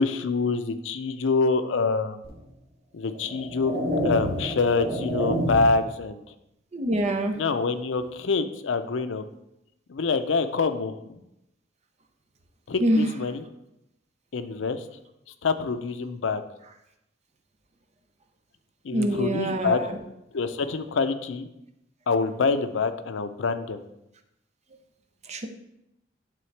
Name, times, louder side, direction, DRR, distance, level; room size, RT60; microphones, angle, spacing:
voice 1, 0.0-2.2 2.9-3.7 4.0-6.2 7.4-9.2 9.9-11.2 12.7-13.4 14.3-14.8 15.4-16.4 18.8-19.8 20.3-21.5 22.1-23.8, left 4 dB, 85° left, 10 dB, 0.5 m, -26 dB
sound 1, 2.2-2.4 3.1-5.9, equal, 55° right, 1.1 m, -28 dB
voice 2, 6.7-7.4 12.8-13.1 18.9-20.0 25.2-25.5, right 1 dB, 35° right, 5 dB, 0.7 m, -25 dB
10.5 x 3.8 x 3.3 m, 0.85 s
head